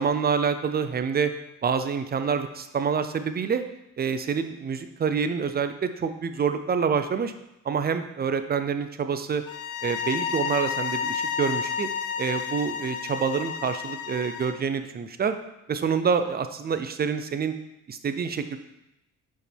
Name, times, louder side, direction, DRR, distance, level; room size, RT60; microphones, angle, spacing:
voice 1, 0.0-1.3 1.6-3.6 4.0-7.3 7.6-9.4 9.8-11.9 12.2-15.4 15.7-17.5 17.9-18.6, right 6 dB, 30° right, 9 dB, 0.5 m, -27 dB
sound 1, 9.5-14.6, left 7 dB, 85° left, 0.5 m, -31 dB
6.3 x 4.3 x 3.5 m, 0.87 s
cardioid pair, 90°, 30 cm